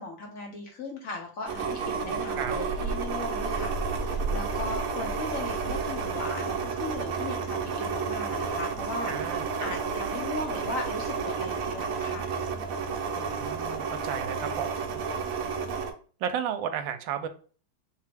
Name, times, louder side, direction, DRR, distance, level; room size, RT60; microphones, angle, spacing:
voice 1, 0.0-12.3, left 3 dB, 60° left, 1 dB, 0.9 m, -38 dB
sound 1, 1.4-15.9, right 5 dB, 65° right, 0.9 m, -31 dB
voice 2, 2.0-2.5 9.1-9.8 13.2-15.0 16.2-17.3, right 8 dB, 80° right, 9 dB, 1.3 m, -34 dB
3.7 x 3.2 x 3.3 m, 0.41 s
omnidirectional pair, 2.0 m